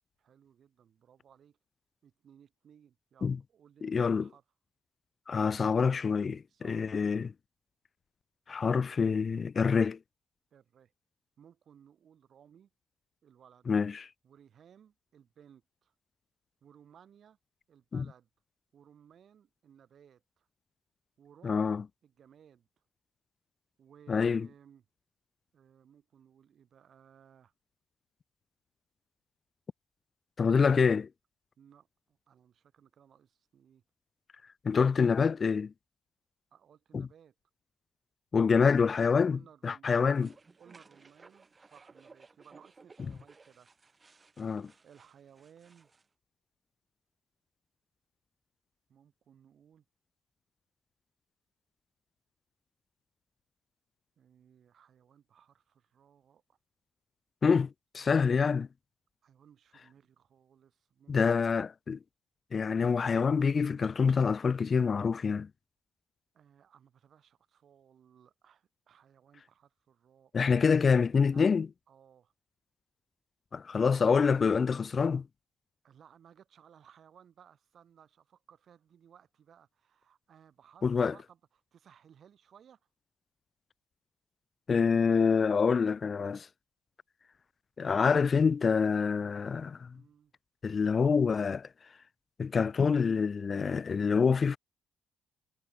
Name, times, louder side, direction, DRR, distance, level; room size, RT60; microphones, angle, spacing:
voice 1, 0.2-1.6 2.0-4.4 6.5-6.9 10.5-10.9 11.4-12.7 13.2-13.7 14.2-15.9 16.6-17.4 17.7-18.3 18.7-20.5 21.2-22.7 23.8-24.8 25.5-27.5 31.6-33.8 36.5-37.3 39.3-40.3 40.6-43.7 44.8-45.9 48.9-49.8 54.2-56.6 58.0-58.2 59.2-61.6 66.3-70.3 71.3-71.5 71.9-72.3 75.8-82.8 89.9-90.3, right 8 dB, 60° right, 5.6 m, -60 dB
voice 2, 3.8-4.2 5.3-7.3 8.5-10.0 13.7-14.1 17.9-18.1 21.4-21.8 24.1-24.5 30.4-31.1 34.6-35.7 36.9-37.1 38.3-40.3 44.4-44.7 57.4-57.7 57.9-58.7 61.1-62.0 62.5-65.5 70.3-71.7 73.5-75.2 80.8-81.1 84.7-86.5 87.8-90.0 90.6-91.7 92.4-94.6, left 5 dB, 40° left, 0.3 m, -26 dB
sound 1, 40.1-46.1, right 4 dB, 30° right, 3.3 m, -59 dB
cardioid pair, 90°, 0 cm